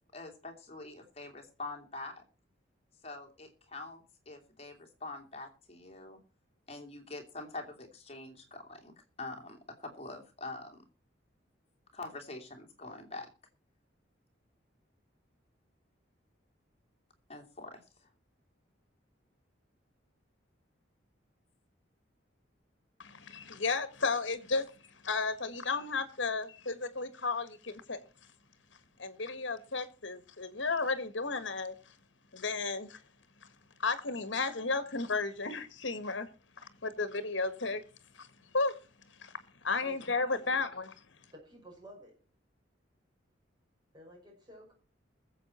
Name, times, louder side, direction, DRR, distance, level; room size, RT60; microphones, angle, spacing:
voice 1, 0.1-2.2 3.0-6.2 6.7-10.8 11.9-13.3 17.3-18.1, left 2 dB, 30° left, 2.8 m, -45 dB
voice 2, 23.0-24.7 25.0-28.0 29.0-31.7 32.3-33.0 33.8-36.3 36.6-37.8 38.1-38.3 38.5-38.8 39.2-39.3 39.6-40.9, left 3 dB, 75° left, 1.5 m, -33 dB
voice 3, 41.3-42.2 43.9-44.7, right 1 dB, 25° right, 5.7 m, -52 dB
21.0 x 7.7 x 4.3 m
head